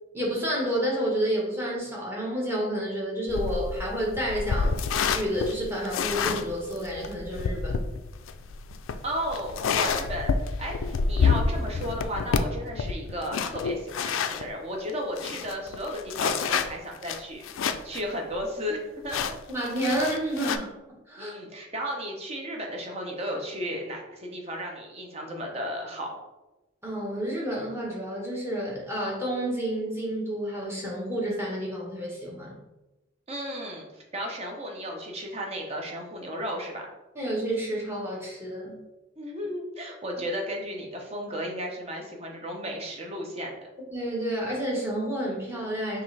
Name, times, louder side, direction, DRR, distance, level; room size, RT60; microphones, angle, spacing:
voice 1, 0.1-7.8 19.5-20.7 21.1-21.3 26.8-32.6 37.1-38.8 43.9-46.0, equal, 15° right, -4 dB, 1.1 m, -30 dB
sound 1, 3.3-14.5 14.9-15.0 15.2-18.0 18.3-18.4 19.1-20.6, left 5 dB, 85° left, 0.3 m, -28 dB
voice 2, 9.0-18.8 19.0-19.4 21.1-26.2 33.3-36.9 39.2-43.6, equal, 30° right, 1 dB, 0.8 m, -34 dB
5.8 x 2.5 x 3.3 m, 1.0 s
head